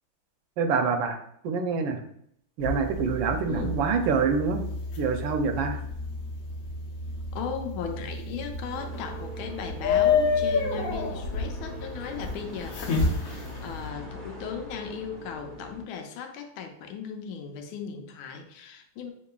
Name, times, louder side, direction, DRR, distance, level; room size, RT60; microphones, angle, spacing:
voice 1, 0.6-1.2 1.4-2.0 2.6-4.6 5.0-5.8, right 5 dB, 80° right, 6 dB, 1.3 m, -26 dB
sound 1, 2.6-13.9, left 4 dB, 60° left, 1.0 m, -30 dB
voice 2, 7.3-19.1, left 6 dB, 90° left, 5 dB, 1.4 m, -37 dB
sound 2, 8.7-15.8, equal, 50° right, 0.5 m, -43 dB
6.4 x 2.8 x 2.3 m, 0.69 s
omnidirectional pair, 2.2 m